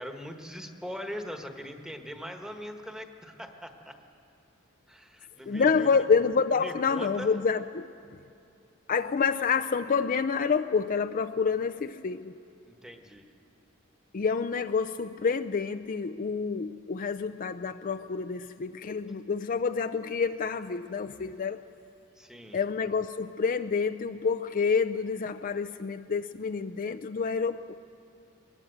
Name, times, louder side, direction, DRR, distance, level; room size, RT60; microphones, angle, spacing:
voice 1, 0.0-3.9 4.9-5.9 6.5-7.3 12.7-13.3 22.2-22.6, equal, 5° right, 5 dB, 1.3 m, -41 dB
voice 2, 5.5-7.8 8.9-12.4 14.1-21.6 22.5-27.7, left 5 dB, 40° left, 9 dB, 0.4 m, -28 dB
21.5 x 19.0 x 7.9 m, 2.5 s
head